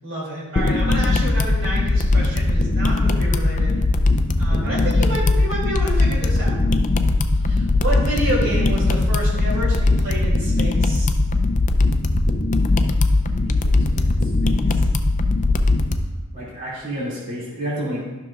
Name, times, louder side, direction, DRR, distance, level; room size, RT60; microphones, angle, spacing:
voice 1, 0.0-3.8 4.4-6.6 7.4-11.1, right 1 dB, 60° right, -5 dB, 2.6 m, -29 dB
sound 1, 0.6-16.0, left 2 dB, 35° left, 0.4 m, -19 dB
voice 2, 13.3-14.9 16.3-18.0, equal, 40° right, -8 dB, 2.4 m, -32 dB
13.0 x 6.0 x 2.4 m, 1.2 s
head